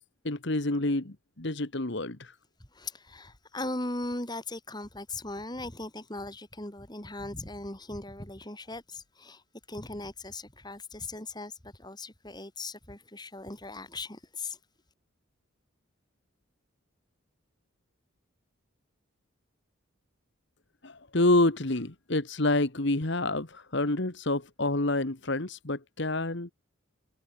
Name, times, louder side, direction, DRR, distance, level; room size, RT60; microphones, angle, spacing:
voice 1, 0.2-2.3 20.8-26.5, left 2 dB, 55° left, 1.7 m, -28 dB
voice 2, 2.7-9.4 9.7-14.6, left 2 dB, 20° left, 3.0 m, -39 dB
head